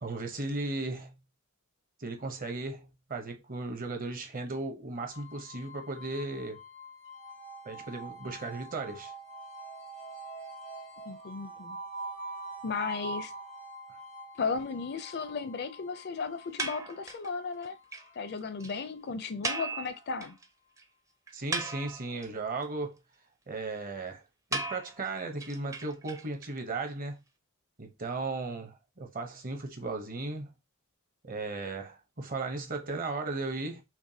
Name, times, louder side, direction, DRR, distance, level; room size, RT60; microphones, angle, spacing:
voice 1, 0.0-1.1 2.0-6.6 7.6-9.1 21.3-23.0 23.5-24.2 24.5-27.2 27.8-30.5 31.2-33.8, right 3 dB, 40° right, 0.8 m, -36 dB
sound 1, 5.1-20.0, right 2 dB, 70° right, 2.6 m, -45 dB
voice 2, 11.1-11.8 12.6-13.3 14.4-17.8 18.2-20.4, left 5 dB, 50° left, 0.5 m, -35 dB
sound 2, 16.6-17.3 17.6-17.7 17.9-18.0 18.3-18.4 18.6-18.7 19.4-20.4 20.8-20.9 21.3-22.3 24.5-26.5, right 2 dB, 15° right, 0.5 m, -36 dB
5.9 x 2.2 x 2.7 m
head